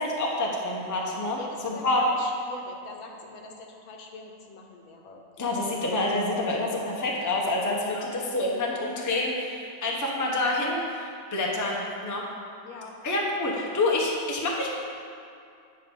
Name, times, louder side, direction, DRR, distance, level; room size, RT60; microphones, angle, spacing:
voice 1, 0.0-2.1 5.4-12.3 13.0-14.7, left 2 dB, 15° left, -2 dB, 0.6 m, -27 dB
voice 2, 1.4-5.6 7.8-8.1 12.6-13.0, left 4 dB, 85° left, 2 dB, 1.7 m, -43 dB
9.2 x 5.4 x 5.4 m, 2.5 s
omnidirectional pair, 2.1 m